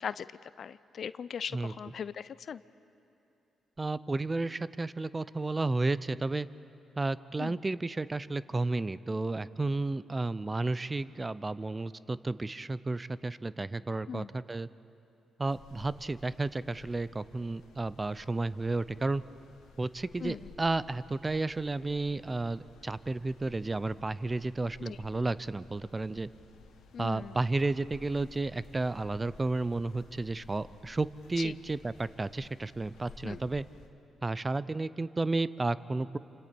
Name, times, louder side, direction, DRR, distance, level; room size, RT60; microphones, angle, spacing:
voice 1, 0.0-2.6 7.4-7.6 14.1-14.4 20.2-20.5 24.8-25.0 26.9-27.4 31.4-31.5 33.2-33.4, left 7 dB, 60° left, 17 dB, 0.5 m, -39 dB
voice 2, 3.8-6.5 7.0-14.7 15.4-19.2 19.8-26.3 27.0-33.6 34.2-36.2, right 2 dB, 30° right, 17 dB, 0.6 m, -32 dB
sound 1, 15.4-33.9, left 3 dB, 75° left, 1.6 m, -55 dB
28.0 x 26.0 x 4.5 m, 2.8 s
hypercardioid pair, 45°, 0 cm